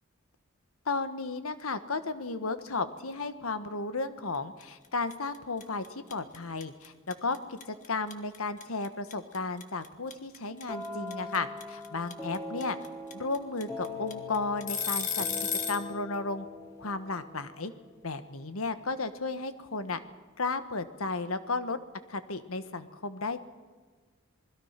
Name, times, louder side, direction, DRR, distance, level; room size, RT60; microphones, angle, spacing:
voice 1, 0.9-12.8 13.1-15.3 15.7-16.5 16.8-17.7 18.0-20.0 20.4-21.8 22.1-23.4, left 3 dB, 85° left, 11 dB, 1.4 m, -34 dB
sound 1, 4.6-4.9 5.1-15.9, left 6 dB, 35° left, 1.8 m, -34 dB
sound 2, 10.7-18.4, left 2 dB, 15° left, 3.6 m, -42 dB
27.0 x 20.5 x 5.9 m, 1.5 s
head